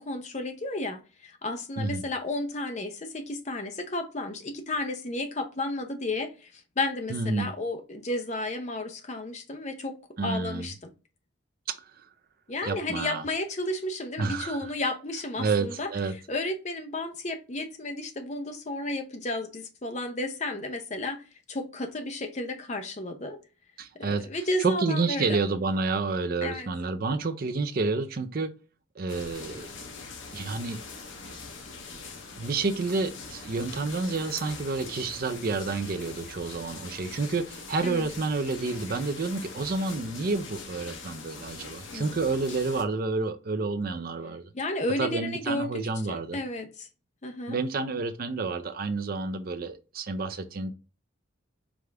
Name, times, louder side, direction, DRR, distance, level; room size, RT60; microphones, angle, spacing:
voice 1, 0.0-10.7 12.5-15.9 16.3-23.4 23.9-25.4 26.4-26.7 37.8-38.1 41.9-42.1 44.5-46.9 47.2-47.6, left 2 dB, 35° left, 0.6 m, -33 dB
voice 2, 7.1-7.5 10.2-10.7 11.7-12.1 12.6-13.2 14.2-14.7 15.4-16.1 23.8-24.3 24.6-28.5 29.0-29.7 30.3-30.8 32.4-44.5 45.0-46.4 47.5-50.7, right 3 dB, 45° right, 0.4 m, -29 dB
sound 1, 29.1-42.8, left 4 dB, 70° left, 0.7 m, -42 dB
4.9 x 2.4 x 3.3 m
head